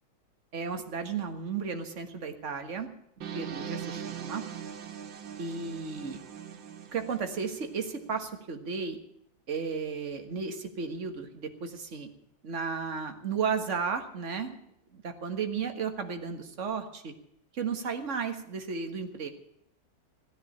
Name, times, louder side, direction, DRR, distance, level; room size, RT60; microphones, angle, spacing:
voice 1, 0.5-2.9 3.3-4.4 5.4-6.2 6.9-9.0 9.5-12.1 12.4-14.6 14.9-17.1 17.5-19.3, right 5 dB, 45° right, 6 dB, 1.8 m, -34 dB
sound 1, 3.2-8.1, right 8 dB, 90° right, 2.0 m, -41 dB
15.5 x 10.0 x 9.0 m, 0.76 s
omnidirectional pair, 2.0 m